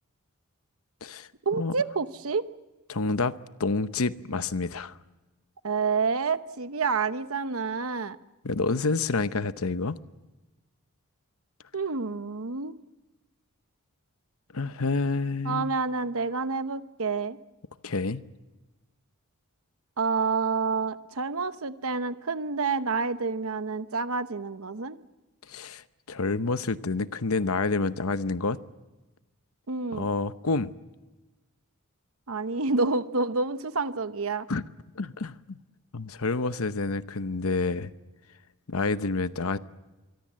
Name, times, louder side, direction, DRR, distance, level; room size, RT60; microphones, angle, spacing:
voice 1, 1.5-2.5 5.6-8.2 11.7-12.7 15.4-17.4 20.0-25.0 29.7-30.1 32.3-34.5, right 4 dB, 70° right, 12 dB, 1.0 m, -28 dB
voice 2, 2.9-3.3 3.6-4.9 8.4-10.0 14.5-15.7 17.8-18.2 25.5-28.6 29.9-30.7 34.5-34.6 35.0-35.6 35.9-37.9 38.7-39.6, left 3 dB, 70° left, 13 dB, 0.9 m, -28 dB
25.0 x 24.0 x 7.5 m, 1.1 s
head